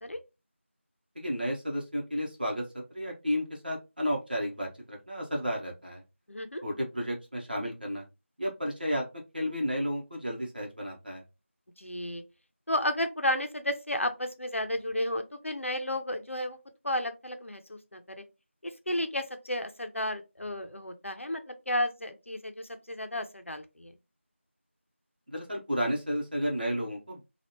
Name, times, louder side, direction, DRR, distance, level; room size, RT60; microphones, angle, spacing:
voice 1, 1.1-6.0 6.6-8.0 8.4-11.2 25.3-27.2, equal, 45° right, 1.1 m, -32 dB
voice 2, 6.3-6.6 11.8-12.2 12.7-16.6 16.8-18.2 18.6-23.9, left 1 dB, 75° left, 0.7 m, -32 dB
3.3 x 2.4 x 2.9 m
figure-of-eight pair, 175°, 7 cm